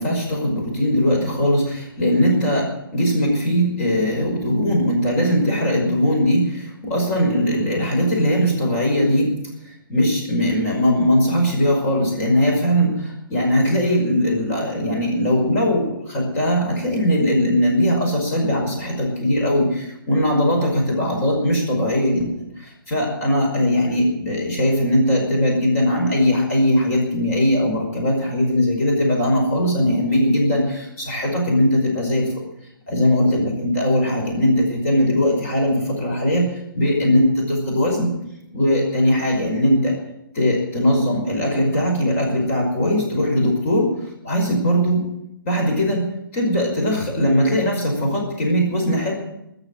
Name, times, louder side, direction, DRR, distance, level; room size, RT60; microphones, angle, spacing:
voice 1, 0.0-9.4 9.7-32.4 32.9-38.1 38.5-39.9 40.3-45.0 45.4-46.1 46.3-49.1, equal, 40° left, 0 dB, 5.5 m, -20 dB
18.5 x 7.0 x 8.9 m, 0.83 s
figure-of-eight pair, 130°, 12 cm